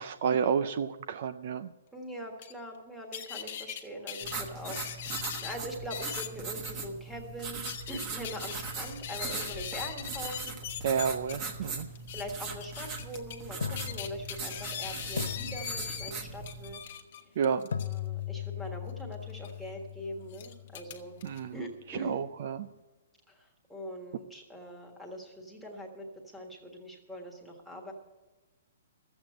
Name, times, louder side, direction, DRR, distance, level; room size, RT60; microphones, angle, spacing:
voice 1, 0.0-1.7 10.8-11.9 17.4-17.6 21.2-21.6 21.9-22.7, right 7 dB, 40° right, 10 dB, 0.4 m, -30 dB
voice 2, 1.9-7.6 7.9-10.6 11.6-11.7 12.1-16.8 17.7-21.2 21.5-22.2 23.3-27.9, equal, ahead, 0 dB, 1.5 m, -42 dB
sound 1, 2.4-2.5 3.1-3.8 4.1-5.6 5.9-6.3 6.6-6.7 7.4-11.3 11.9-12.2 12.6-13.4 13.8-16.1 16.4-18.0 19.3-19.5 20.3-21.4, left 9 dB, 40° left, 1.1 m, -40 dB
sound 2, 4.2-16.7, right 4 dB, 20° right, 1.1 m, -40 dB
sound 3, 12.5-12.6 13.6-14.8 15.2-16.4 17.7-21.6, left 9 dB, 80° left, 0.5 m, -39 dB
13.5 x 8.0 x 7.7 m, 1.2 s
hypercardioid pair, 175°, 0 cm